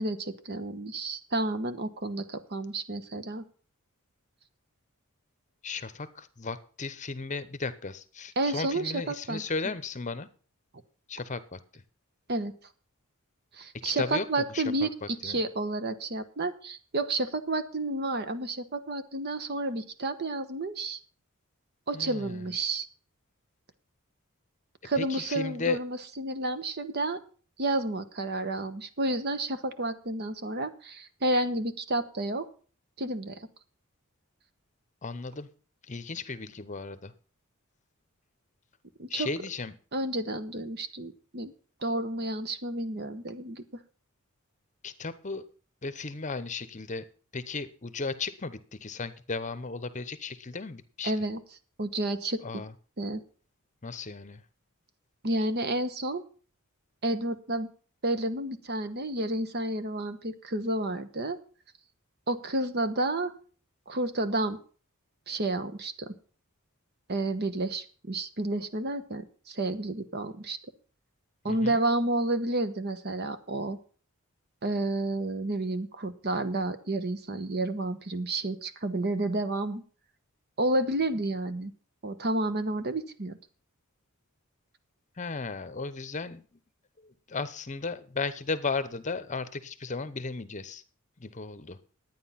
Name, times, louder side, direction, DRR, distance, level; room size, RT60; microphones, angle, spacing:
voice 1, 0.0-3.4 8.4-9.4 12.3-12.5 13.5-21.0 21.9-22.9 24.8-27.2 27.6-32.5 33.0-33.5 39.0-39.3 39.9-41.5 41.8-43.6 51.0-51.4 51.8-52.4 53.0-53.2 55.2-56.2 57.0-57.7 58.0-61.4 62.3-63.3 63.9-64.6 65.3-66.1 67.1-70.6 71.4-73.8 74.6-79.8 80.6-81.7 82.0-83.4, right 2 dB, 45° right, 11 dB, 1.1 m, -30 dB
voice 2, 5.6-10.3 11.1-11.8 13.8-15.4 21.9-22.5 25.0-25.8 35.0-35.5 35.9-37.1 39.1-39.7 44.8-45.5 45.8-47.0 47.3-51.1 52.4-52.7 53.8-54.4 71.4-71.8 85.2-86.4 87.0-90.8 91.2-91.8, left 4 dB, 35° left, 13 dB, 0.8 m, -35 dB
11.5 x 9.3 x 5.7 m, 0.40 s
head